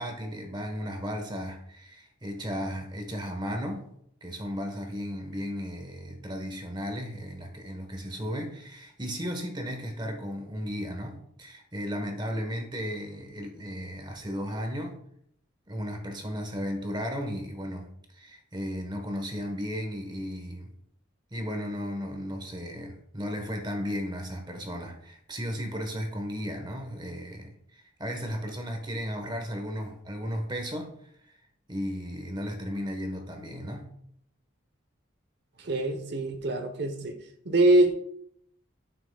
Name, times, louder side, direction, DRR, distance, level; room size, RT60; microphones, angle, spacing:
voice 1, 0.0-3.9 4.2-14.9 15.7-17.9 18.1-20.7 21.3-31.1 31.7-33.9, equal, 20° right, 3 dB, 1.1 m, -35 dB
voice 2, 35.6-37.1 37.4-37.9, right 1 dB, 50° right, 7 dB, 0.9 m, -24 dB
11.5 x 5.9 x 2.3 m, 0.72 s
head